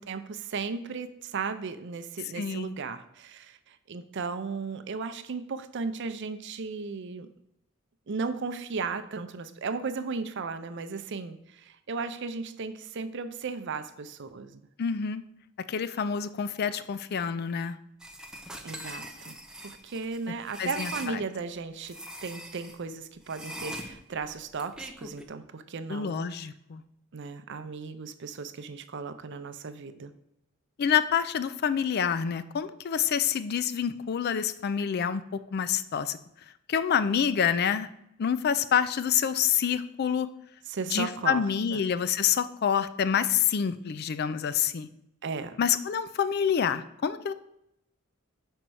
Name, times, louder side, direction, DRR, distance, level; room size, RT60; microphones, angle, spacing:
voice 1, 0.0-7.3 8.1-14.6 18.6-19.4 19.6-26.2 27.1-30.1 40.7-41.4 41.7-41.8 45.2-45.6, right 4 dB, 60° right, 10 dB, 0.5 m, -36 dB
voice 2, 2.4-2.7 14.8-15.2 15.7-17.8 20.6-21.2 25.9-26.8 30.8-35.2 35.5-36.2 36.7-37.9 38.2-40.3 40.9-44.9 45.6-47.3, left 8 dB, 50° left, 14 dB, 0.4 m, -27 dB
sound 1, 18.0-21.1 21.8-22.8 23.3-25.2, equal, 5° right, 0.6 m, -41 dB
5.3 x 4.4 x 6.1 m, 0.78 s
head